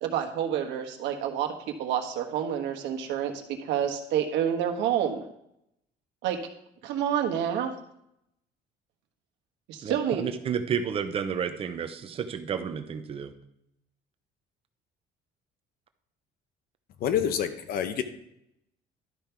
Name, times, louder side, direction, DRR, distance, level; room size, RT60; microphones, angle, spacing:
voice 1, 0.0-5.3 6.2-6.4 6.8-7.7 9.7-10.2, right 9 dB, 75° right, 4 dB, 1.3 m, -28 dB
voice 2, 9.8-13.3, right 7 dB, 30° right, 8 dB, 0.7 m, -31 dB
voice 3, 17.0-18.0, left 9 dB, 55° left, 10 dB, 0.8 m, -27 dB
12.0 x 5.2 x 4.6 m, 0.78 s
cardioid pair, 165°, 19 cm